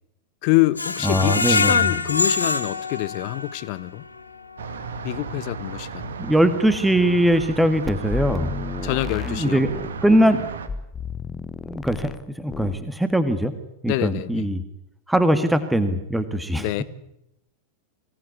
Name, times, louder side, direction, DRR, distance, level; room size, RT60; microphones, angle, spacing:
voice 1, 0.4-4.0 5.0-6.2 8.8-9.6 13.9-14.5 16.5-16.8, left 20 dB, 45° left, 0.9 m, -25 dB
Screech, 0.8-3.8 4.2-4.3 4.7-4.8, left 4 dB, 80° left, 1.7 m, -24 dB
voice 2, 1.0-1.9 6.2-8.5 9.3-9.7 10.0-10.4 11.6-13.5 13.8-14.6 15.1-16.7, right 1 dB, 5° right, 1.9 m, -21 dB
sound 1, 4.6-10.7, right 6 dB, 65° right, 2.2 m, -34 dB
sound 2, 7.9-10.0 10.7-12.2 12.5-12.8, left 5 dB, 20° left, 1.0 m, -32 dB
25.0 x 18.0 x 9.7 m
figure-of-eight pair, 90°, 0 cm